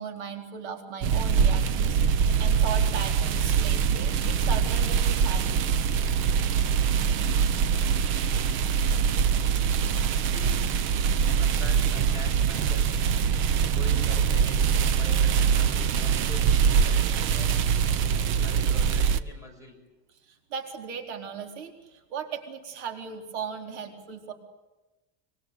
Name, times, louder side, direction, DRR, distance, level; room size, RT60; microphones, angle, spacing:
voice 1, 0.0-5.8 20.3-24.3, right 6 dB, 75° right, 4 dB, 4.4 m, -37 dB
sound 1, 1.0-19.2, right 7 dB, 35° right, 1.0 m, -23 dB
voice 2, 10.2-10.8 11.3-12.9 13.7-17.5 18.2-19.8, equal, 10° right, 3 dB, 6.2 m, -45 dB
25.0 x 24.0 x 8.5 m, 1.1 s
cardioid pair, 170°, 34 cm